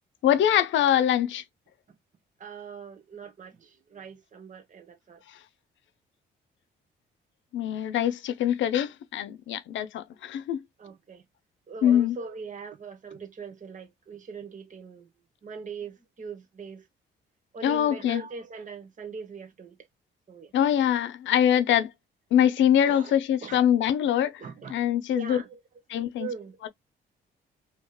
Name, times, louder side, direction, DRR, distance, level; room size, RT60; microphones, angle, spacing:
voice 1, 0.2-1.4 7.5-10.6 11.8-12.2 17.6-18.2 20.5-21.9 22.3-24.4 24.7-25.4 25.9-26.3 26.6-26.7, left 10 dB, 75° left, 0.6 m, -23 dB
voice 2, 2.4-5.2 10.8-11.2 11.7-15.1 15.4-16.9 17.5-19.8 20.3-20.5 22.8-23.7 24.4-24.9 25.1-25.6 26.2-26.6, right 5 dB, 40° right, 1.1 m, -41 dB
2.9 x 2.8 x 2.2 m
cardioid pair, 90°, 20 cm